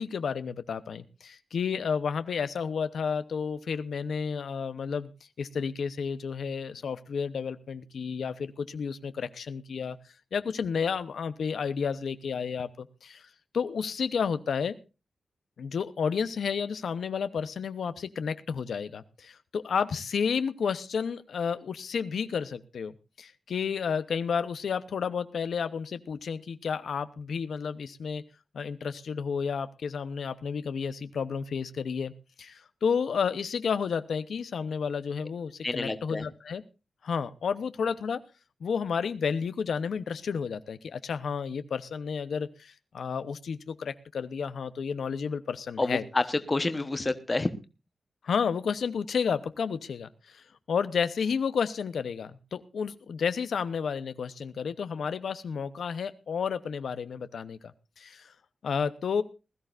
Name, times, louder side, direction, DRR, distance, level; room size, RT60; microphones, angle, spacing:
voice 1, 0.0-5.1 5.4-10.0 10.3-14.8 15.6-22.9 23.2-28.2 28.5-32.1 32.4-36.6 37.0-38.2 38.6-46.0 48.2-57.6 58.0-58.3 58.6-59.2, left 6 dB, 85° left, 12 dB, 0.8 m, -31 dB
voice 2, 35.6-36.3 45.8-47.5, left 2 dB, 20° left, 10 dB, 1.1 m, -28 dB
20.5 x 14.0 x 2.6 m, 0.30 s
wide cardioid pair, 170°, 0 cm